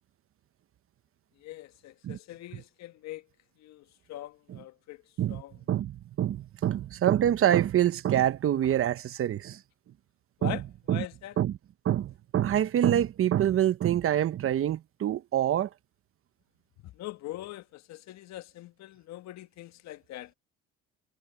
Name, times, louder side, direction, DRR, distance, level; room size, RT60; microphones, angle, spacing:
voice 1, 1.4-3.2 3.6-5.0 5.3-5.5 10.4-10.6 10.9-11.4 16.8-20.3, left 15 dB, 65° left, 1.7 m, -42 dB
voice 2, 5.7-9.6 10.4-10.6 10.9-11.1 11.4-11.5 11.8-15.7, right 11 dB, 50° right, 1.0 m, -26 dB
supercardioid pair, 85°, 29 cm